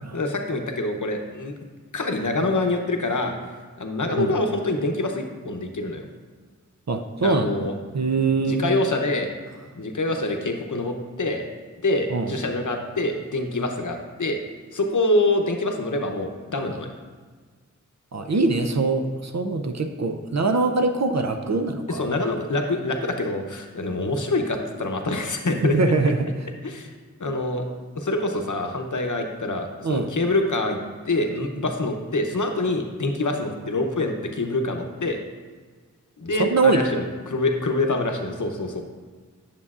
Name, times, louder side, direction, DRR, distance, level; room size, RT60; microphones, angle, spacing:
voice 1, 0.1-1.5 1.9-3.4 3.8-6.1 7.2-7.7 8.5-9.3 9.8-11.5 11.8-14.4 14.7-16.9 21.9-25.8 26.6-26.9 27.2-27.6 27.9-30.8 31.0-35.2 36.2-38.8, left 2 dB, 75° left, 4 dB, 0.8 m, -25 dB
voice 2, 6.9-7.7 7.9-8.7 12.1-12.4 18.1-22.0 25.6-26.3 29.8-30.2 36.4-36.8, right 3 dB, 60° right, 6 dB, 0.5 m, -23 dB
9.5 x 7.0 x 2.4 m, 1.5 s
wide cardioid pair, 50°, 31 cm